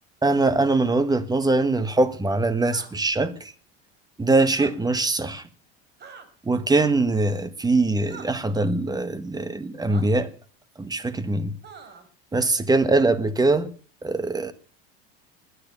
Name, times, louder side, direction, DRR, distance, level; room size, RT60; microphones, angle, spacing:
voice 1, 0.2-3.5 4.2-5.4 6.4-10.3 10.8-11.5 12.3-13.7 14.0-14.5, right 2 dB, 15° right, 1.5 m, -22 dB
sound 1, 2.6-2.9 4.5-4.7 6.0-6.3 8.1-8.3 9.9-10.0 11.6-12.1, right 6 dB, 35° right, 4.0 m, -42 dB
20.5 x 9.7 x 6.8 m
supercardioid pair, 110°, 30 cm